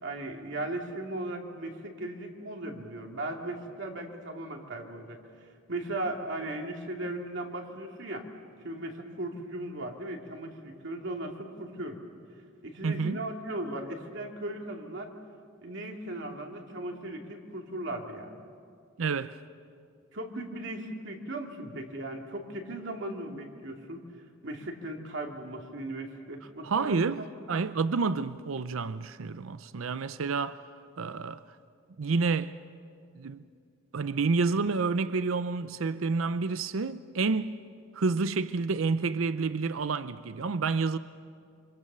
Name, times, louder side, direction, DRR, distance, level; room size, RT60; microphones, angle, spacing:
voice 1, 0.0-5.2 5.7-8.3 8.6-12.0 12.6-15.1 15.6-18.3 20.1-24.0 24.4-27.0, right 1 dB, 65° right, 2.6 m, -37 dB
voice 2, 12.8-13.2 19.0-19.4 26.6-30.6 31.0-31.4 32.0-32.6 33.2-33.4 33.9-37.6 37.9-41.0, right 4 dB, 80° right, 0.6 m, -29 dB
27.0 x 25.0 x 6.9 m
head